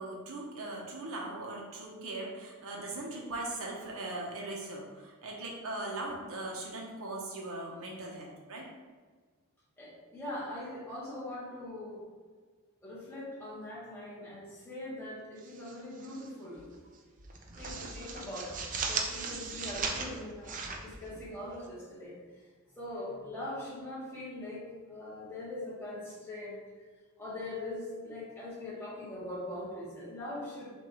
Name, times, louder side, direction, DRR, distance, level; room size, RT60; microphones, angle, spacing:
voice 1, 0.0-8.7, right 2 dB, 65° right, -1 dB, 1.0 m, -39 dB
voice 2, 9.8-12.0 12.8-16.7 17.6-22.4 22.7-26.6 27.2-30.7, left 1 dB, 10° left, -8 dB, 1.5 m, -42 dB
sound 1, 15.4-16.3 16.6-16.8 17.2-21.7, right 4 dB, 35° right, 0.5 m, -38 dB
6.0 x 2.7 x 3.1 m, 1.5 s
head